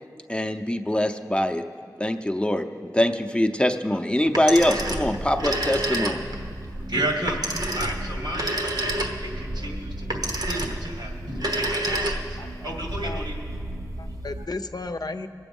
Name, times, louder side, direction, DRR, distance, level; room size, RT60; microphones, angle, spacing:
voice 1, 0.3-1.6 2.0-6.3, left 1 dB, 15° left, 5 dB, 0.7 m, -23 dB
Telephone, 4.3-6.5 7.3-9.4 10.1-10.9 11.3-12.5, right 1 dB, 65° right, 1.2 m, -28 dB
sound 1, 4.6-14.5, right 1 dB, 50° right, 0.8 m, -35 dB
voice 2, 6.4-7.4 7.8-12.2 12.6-13.4 14.4-14.5, right 1 dB, 85° right, 0 dB, 2.3 m, -32 dB
voice 3, 11.9-12.7 13.0-13.2 14.0-15.3, left 3 dB, 65° left, 8 dB, 0.6 m, -35 dB
21.5 x 7.8 x 5.4 m, 2.3 s
wide cardioid pair, 45°, 7 cm